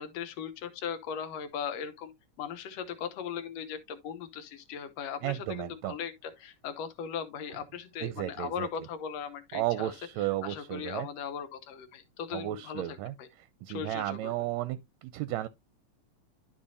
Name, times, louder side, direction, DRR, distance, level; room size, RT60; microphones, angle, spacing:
voice 1, 0.0-2.1 2.4-9.9 10.2-13.3 13.7-14.3, left 7 dB, 70° left, 2.0 m, -38 dB
voice 2, 5.2-5.9 8.0-8.7 9.5-11.1 12.3-13.1 13.6-15.5, right 15 dB, 80° right, 1.8 m, -33 dB
11.5 x 5.2 x 2.6 m
omnidirectional pair, 3.3 m